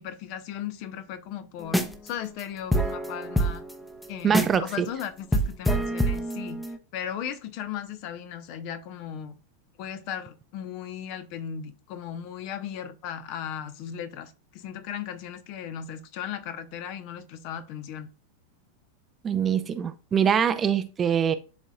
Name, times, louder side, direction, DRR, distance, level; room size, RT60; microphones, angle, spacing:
voice 1, 0.0-3.6 4.1-6.6 6.9-9.3 9.8-18.1, left 9 dB, 45° left, 0.9 m, -37 dB
sound 1, 1.6-2.1 2.4-2.5 2.7-4.7 5.0-5.1 5.3-6.8, right 1 dB, 5° left, 0.9 m, -26 dB
voice 2, 4.2-4.9 19.2-21.3, right 8 dB, 20° right, 0.6 m, -24 dB
11.5 x 4.1 x 2.4 m
figure-of-eight pair, 90°, 0 cm